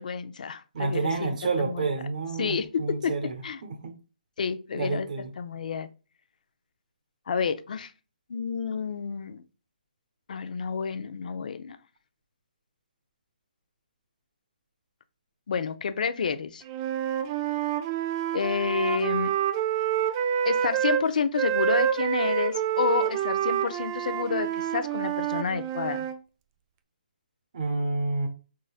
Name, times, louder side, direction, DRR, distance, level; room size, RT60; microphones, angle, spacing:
voice 1, 0.0-1.3 1.6-1.9 2.4-3.6 4.4-5.1 5.4-5.9 7.3-7.9 8.3-9.4 10.3-11.8 15.5-16.6 18.3-19.3 20.4-26.1, left 6 dB, 55° left, 0.6 m, -29 dB
voice 2, 0.7-3.3 3.6-4.0 4.7-5.3 27.5-28.3, right 3 dB, 50° right, 1.1 m, -29 dB
Wind instrument woodwind instrument, 16.7-21.0 21.4-26.2, right 10 dB, 25° right, 0.3 m, -27 dB
5.3 x 3.7 x 2.4 m
hypercardioid pair, 155°, 5 cm